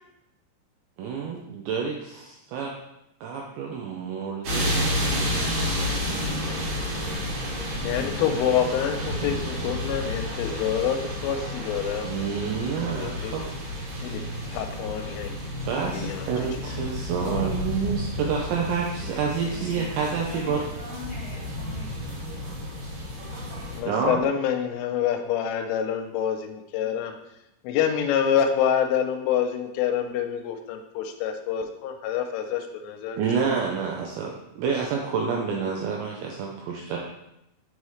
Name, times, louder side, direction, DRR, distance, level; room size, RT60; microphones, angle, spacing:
voice 1, 1.0-2.7 3.2-6.5 12.0-13.4 15.7-20.6 23.8-24.2 33.2-37.0, right 6 dB, 85° right, -1 dB, 2.5 m, -29 dB
sound 1, 4.4-23.8, left 1 dB, 55° right, 2.4 m, -31 dB
voice 2, 7.8-12.1 12.8-13.5 14.0-15.4 15.9-16.3 16.6-16.7 23.7-27.2 27.6-33.2, left 8 dB, 85° left, 6 dB, 3.1 m, -27 dB
voice 3, 19.5-19.8 20.3-21.9 26.8-27.1, left 2 dB, 60° left, -7 dB, 2.3 m, -42 dB
6.6 x 5.5 x 3.1 m, 0.86 s
omnidirectional pair, 5.7 m